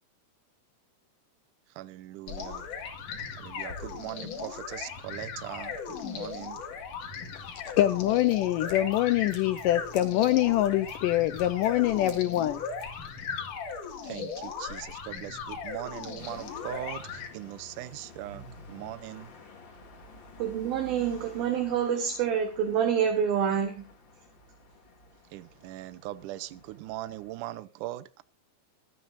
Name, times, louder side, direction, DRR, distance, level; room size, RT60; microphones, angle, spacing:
voice 1, 1.7-2.7 3.4-6.7 14.0-19.3 25.3-28.2, right 15 dB, 85° right, 1.8 m, -40 dB
sound 1, 2.3-17.3, left 6 dB, 55° left, 3.3 m, -38 dB
voice 2, 7.3-12.6, left 14 dB, 90° left, 1.9 m, -25 dB
Scissors, 7.8-13.2, right 3 dB, 45° right, 3.7 m, -52 dB
sound 2, 16.2-27.3, left 1 dB, 35° left, 2.4 m, -51 dB
voice 3, 20.4-23.9, right 8 dB, 65° right, 3.4 m, -27 dB
26.0 x 9.6 x 2.6 m
omnidirectional pair, 4.7 m